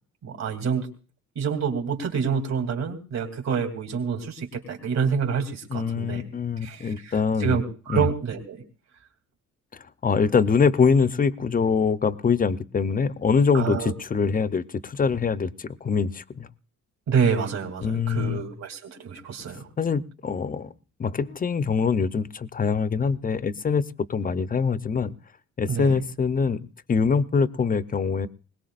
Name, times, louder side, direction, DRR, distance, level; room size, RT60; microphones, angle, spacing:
voice 1, 0.2-0.9 1.3-6.2 6.6-8.6 13.5-13.9 17.1-19.7 25.7-25.9, right 6 dB, 60° right, 5 dB, 3.1 m, -27 dB
voice 2, 5.7-7.6 7.9-8.1 10.0-16.5 17.8-18.4 19.8-20.7 21.0-23.8 24.1-25.1 25.6-28.3, left 5 dB, 30° left, 15 dB, 0.7 m, -24 dB
21.0 x 19.0 x 2.5 m, 0.39 s
cardioid pair, 90°, 30 cm